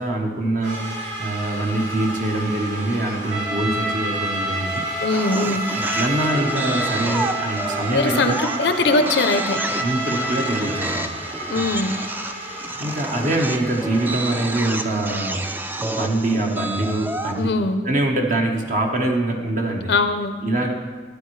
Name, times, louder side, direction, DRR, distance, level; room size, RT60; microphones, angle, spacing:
voice 1, 0.0-4.8 5.8-8.3 9.8-11.2 11.5-11.7 12.4-12.5 12.8-15.4 15.8-17.5 17.8-19.9 20.4-20.7, right 2 dB, 45° right, 2 dB, 1.1 m, -24 dB
sound 1, 0.6-14.8, right 1 dB, 80° right, 2.8 m, -33 dB
Trumpet, 3.3-11.0, right 1 dB, 25° right, 1.9 m, -29 dB
voice 2, 5.0-5.6 7.9-9.6 11.5-11.9 17.4-17.8 19.9-20.3, left 3 dB, 70° left, 8 dB, 0.5 m, -21 dB
sound 2, 5.1-17.4, right 1 dB, 10° right, 0.4 m, -30 dB
13.0 x 9.8 x 3.2 m, 1.5 s
head